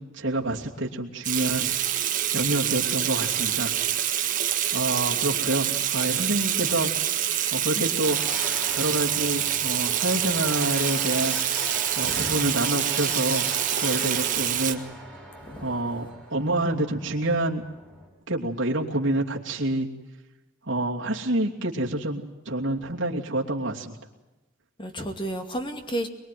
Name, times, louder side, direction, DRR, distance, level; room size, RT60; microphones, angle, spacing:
voice 1, 0.0-1.7 2.3-3.7 4.7-6.9 7.5-8.2 8.7-11.4 11.9-14.8 15.6-17.6 18.3-19.9 20.6-24.0, right 1 dB, 60° right, 2.8 m, -27 dB
Water tap faucet / Sink (filling or washing), 1.2-14.7, right 11 dB, 40° right, 1.7 m, -26 dB
voice 2, 7.3-7.9 12.0-12.4 15.4-15.7 24.8-26.1, right 1 dB, 25° left, 2.4 m, -33 dB
sound 1, 8.0-18.1, right 2 dB, 5° left, 6.6 m, -38 dB
23.5 x 22.5 x 9.3 m
head